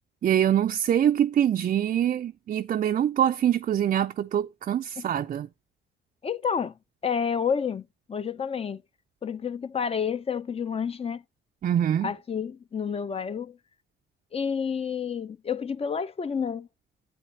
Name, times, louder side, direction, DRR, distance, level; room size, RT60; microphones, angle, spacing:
voice 1, 0.2-5.5 11.6-12.1, right 10 dB, 40° right, 0.4 m, -24 dB
voice 2, 6.2-8.8 9.2-11.2 12.0-13.6 14.3-16.7, left 6 dB, 30° left, 0.5 m, -30 dB
9.0 x 8.3 x 2.8 m
cardioid pair, 90°, 20 cm